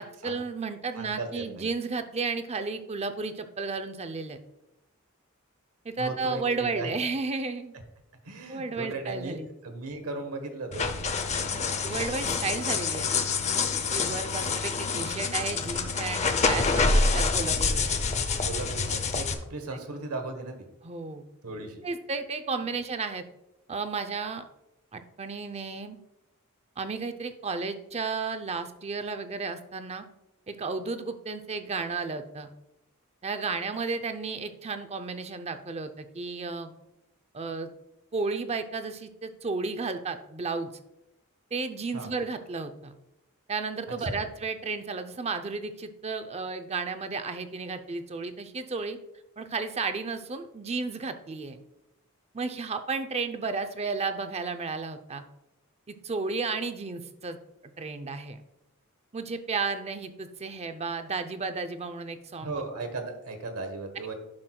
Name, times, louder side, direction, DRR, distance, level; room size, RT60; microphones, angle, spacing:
voice 1, 0.0-4.4 5.8-7.7 8.5-9.5 11.5-13.3 13.9-17.9 20.8-21.2 21.8-23.2 23.7-24.4 24.9-26.0 26.8-30.0 30.5-32.5 33.2-36.7 37.3-37.7 38.1-40.7 41.5-42.9 43.5-49.0 49.4-51.6 52.3-55.2 55.9-57.4 57.8-58.4 59.1-62.6, right 4 dB, 30° right, 9 dB, 0.5 m, -33 dB
voice 2, 0.9-1.7 6.0-7.0 8.2-10.9 18.4-20.6 21.4-21.8 41.9-42.1 44.0-44.2 62.4-64.1, right 3 dB, 85° right, 6 dB, 1.2 m, -36 dB
sound 1, 10.7-19.3, left 4 dB, 30° left, 0.6 m, -27 dB
11.5 x 6.0 x 2.3 m, 0.88 s
head